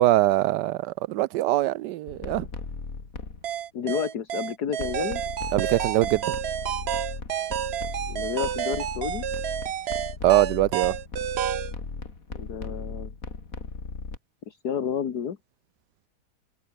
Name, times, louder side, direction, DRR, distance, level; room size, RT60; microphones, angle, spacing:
voice 1, 0.0-2.5 5.5-6.3 10.2-10.9, right 16 dB, 85° right, 1.2 m, -22 dB
sound 1, 2.1-3.5 4.8-14.2, left 4 dB, 55° left, 3.2 m, -37 dB
sound 2, 3.4-11.7, right 10 dB, 60° right, 0.7 m, -30 dB
voice 2, 3.7-5.2 8.1-9.2 12.4-13.1 14.5-15.4, left 8 dB, 70° left, 2.0 m, -30 dB
omnidirectional pair, 1.8 m